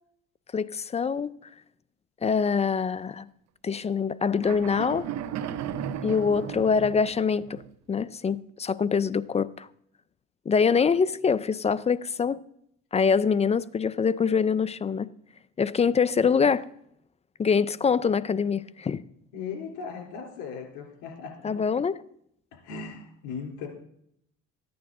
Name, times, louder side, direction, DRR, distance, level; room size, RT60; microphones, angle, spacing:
voice 1, 0.5-1.3 2.2-3.3 3.6-5.1 6.0-7.6 7.9-9.7 10.5-12.4 12.9-15.1 15.6-16.7 17.4-19.0 21.4-21.9, left 6 dB, 20° left, 0.4 m, -24 dB
sound 1, 4.4-7.7, right 9 dB, 60° right, 0.8 m, -35 dB
voice 2, 19.3-21.3 22.5-23.7, left 5 dB, 85° left, 3.5 m, -37 dB
14.0 x 9.5 x 3.8 m
supercardioid pair, 85°, 30 cm